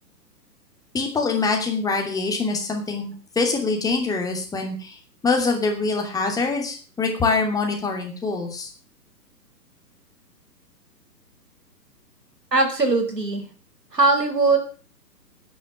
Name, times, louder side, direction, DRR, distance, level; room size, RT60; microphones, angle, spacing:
voice 1, 0.9-5.0 5.2-8.7, left 4 dB, 5° left, 2 dB, 2.8 m, -24 dB
voice 2, 12.5-13.5 13.9-14.6, right 3 dB, 75° right, 7 dB, 5.4 m, -20 dB
11.5 x 10.5 x 7.5 m, 0.39 s
figure-of-eight pair, 125°, 49 cm